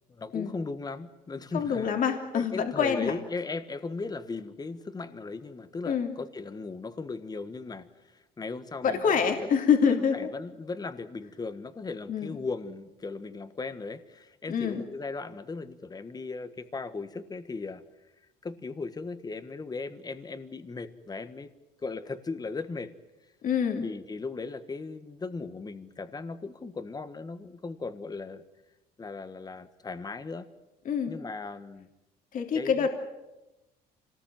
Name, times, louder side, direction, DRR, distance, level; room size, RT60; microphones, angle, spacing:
voice 1, 0.1-1.9 2.3-9.5 10.1-17.8 18.4-21.5 21.8-22.9 23.8-28.4 29.0-30.5 31.1-31.9 32.5-32.9, left 4 dB, 25° left, 11 dB, 1.5 m, -37 dB
voice 2, 1.5-3.2 5.9-6.1 8.8-10.3 12.1-12.4 14.5-14.8 23.4-23.9 30.8-31.2 32.3-32.9, left 6 dB, 55° left, 3 dB, 3.0 m, -26 dB
26.5 x 19.0 x 9.1 m, 1.0 s
cardioid pair, 110°, 17 cm